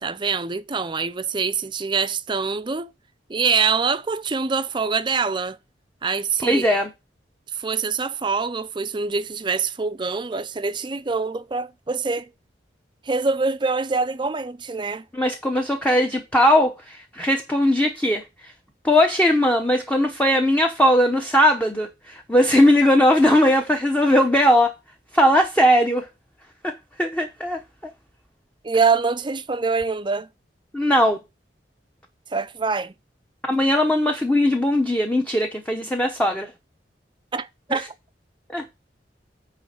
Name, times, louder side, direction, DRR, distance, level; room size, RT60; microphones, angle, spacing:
voice 1, 0.0-2.9 3.3-5.6 6.0-6.7 7.5-12.3 13.0-15.1 28.6-30.3 32.3-32.9 37.3-37.9, right 4 dB, 25° right, 0.5 m, -24 dB
voice 2, 6.4-6.9 15.1-18.5 18.8-24.7 25.1-26.1 26.6-26.7 27.0-27.9 30.7-31.2 33.5-36.5 38.5-38.6, equal, 10° left, 0.8 m, -19 dB
9.4 x 3.2 x 6.5 m
head